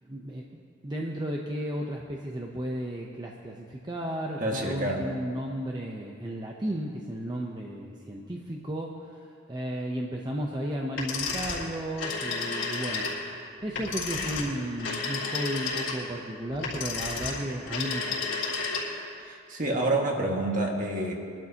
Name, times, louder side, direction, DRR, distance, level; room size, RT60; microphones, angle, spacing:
voice 1, 0.0-18.3, right 1 dB, 20° right, -1 dB, 0.8 m, -34 dB
voice 2, 4.4-5.0 19.2-21.1, right 2 dB, 40° right, 0 dB, 1.8 m, -28 dB
sound 1, 10.9-19.1, left 4 dB, 75° left, 4.0 m, -32 dB
23.5 x 12.0 x 2.9 m, 2.3 s
head